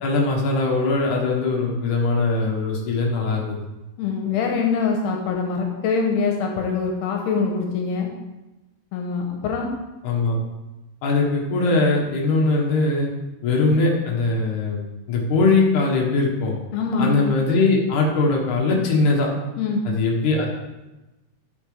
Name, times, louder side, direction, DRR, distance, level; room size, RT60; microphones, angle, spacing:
voice 1, 0.0-3.6 10.0-10.4 11.0-13.1 13.4-14.8 15.1-16.5 17.0-19.3 20.0-20.5, left 3 dB, 60° left, -2 dB, 2.5 m, -21 dB
voice 2, 4.0-8.1 8.9-9.7 16.7-17.2 19.6-19.8, left 5 dB, 85° left, 2 dB, 2.9 m, -24 dB
11.0 x 6.3 x 3.4 m, 1.0 s
omnidirectional pair, 4.8 m